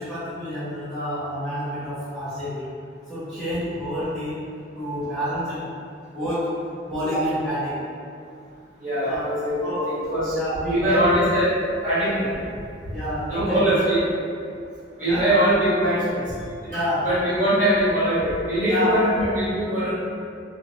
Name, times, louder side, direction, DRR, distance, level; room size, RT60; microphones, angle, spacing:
voice 1, 0.0-2.8 3.1-4.4 4.8-5.8 6.1-7.8 9.0-9.3 9.6-9.9 10.3-11.0 12.9-13.6 15.0-15.3 16.7-17.1 18.6-19.0, equal, 5° left, -16 dB, 0.8 m, -28 dB
voice 2, 8.8-9.6 9.8-10.4 10.7-11.5 11.8-12.3 13.3-14.0 15.0-16.2 16.6-19.9, right 1 dB, 40° right, -13 dB, 1.3 m, -22 dB
2.6 x 2.5 x 2.8 m, 2.4 s
head